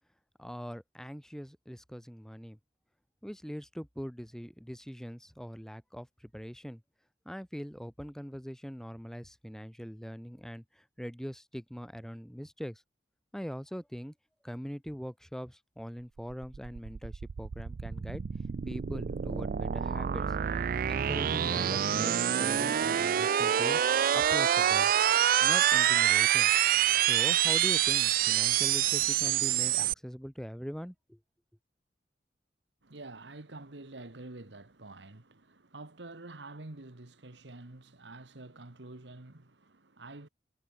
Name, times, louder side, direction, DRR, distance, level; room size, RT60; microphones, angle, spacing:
voice 1, 0.4-2.6 3.2-6.8 7.3-12.8 13.3-14.1 14.4-18.2 18.7-20.2 20.9-23.8 24.1-24.9 25.4-26.5 27.1-31.2, equal, 5° left, 2.3 m, -42 dB
sound 1, 16.2-29.9, right 10 dB, 55° right, 0.4 m, -27 dB
voice 2, 32.8-40.3, right 2 dB, 85° right, 1.7 m, -47 dB
head